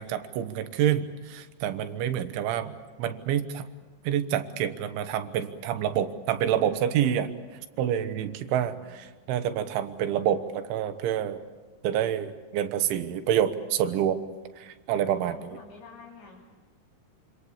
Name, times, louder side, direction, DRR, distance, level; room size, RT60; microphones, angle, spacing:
voice 1, 0.0-2.7 3.0-3.7 4.1-7.3 7.8-11.4 11.8-14.2 14.6-15.6, right 10 dB, 80° right, 9 dB, 3.7 m, -27 dB
voice 2, 8.4-9.1 15.3-16.4, left 4 dB, 60° left, -2 dB, 4.9 m, -49 dB
27.0 x 27.0 x 7.2 m, 1.3 s
omnidirectional pair, 5.4 m